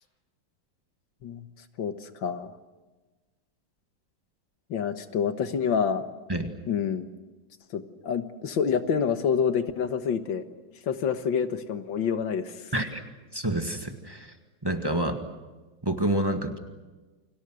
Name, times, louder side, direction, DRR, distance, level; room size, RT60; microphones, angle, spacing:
voice 1, 1.8-2.5 4.7-6.1 6.7-7.1 7.7-10.4 10.9-12.7, left 7 dB, 80° left, 9 dB, 2.1 m, -27 dB
voice 2, 13.3-14.3 14.6-15.2 15.8-16.6, right 1 dB, 15° right, 5 dB, 1.8 m, -28 dB
30.0 x 24.5 x 6.4 m, 1.2 s
omnidirectional pair, 2.0 m